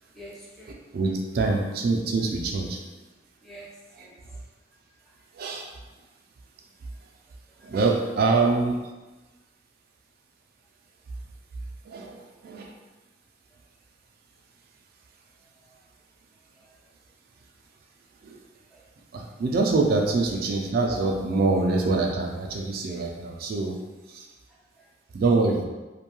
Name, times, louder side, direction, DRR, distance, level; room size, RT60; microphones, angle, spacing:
voice 1, 0.0-0.8 3.4-4.4 4.9-5.2 7.6-7.8 8.3-8.4 12.0-12.2 15.6-15.8 16.5-16.8 18.7-18.9 24.5-24.9, right 2 dB, ahead, -6 dB, 0.6 m, -45 dB
voice 2, 0.9-2.8 4.0-4.1 5.3-5.7 7.6-8.7 11.8-12.7 18.2-18.4 19.1-23.8 24.1-24.3 25.1-25.6, right 3 dB, 55° right, 1 dB, 0.3 m, -25 dB
2.6 x 2.2 x 2.9 m, 1.2 s
head